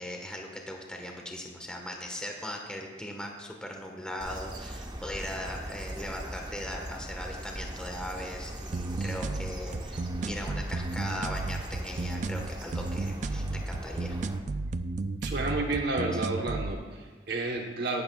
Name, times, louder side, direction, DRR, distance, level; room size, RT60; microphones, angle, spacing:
voice 1, 0.0-14.2, left 1 dB, 5° left, 1 dB, 1.3 m, -39 dB
sound 1, 4.2-14.4, right 1 dB, 25° right, 1.0 m, -40 dB
sound 2, 8.7-16.7, right 3 dB, 40° right, 0.4 m, -33 dB
voice 2, 15.2-18.0, right 2 dB, 60° right, 1 dB, 1.0 m, -31 dB
17.5 x 12.5 x 2.3 m, 1.4 s
head